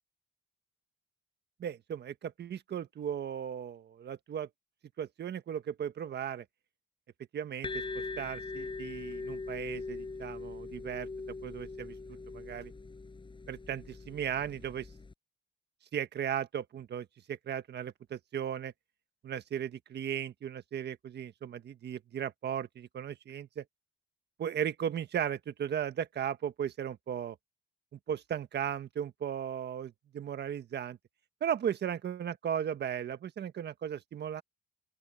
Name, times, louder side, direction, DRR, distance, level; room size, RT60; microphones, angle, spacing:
voice 1, 1.6-4.5 5.0-6.4 7.3-11.1 11.4-12.7 13.5-14.9 15.9-18.7 19.2-23.6 24.4-27.4 27.9-31.0 31.4-34.4, right 9 dB, 55° right, 1.5 m, -36 dB
sound 1, 7.6-15.1, left 3 dB, 25° left, 7.0 m, -41 dB
open air
cardioid pair, 90°, 20 cm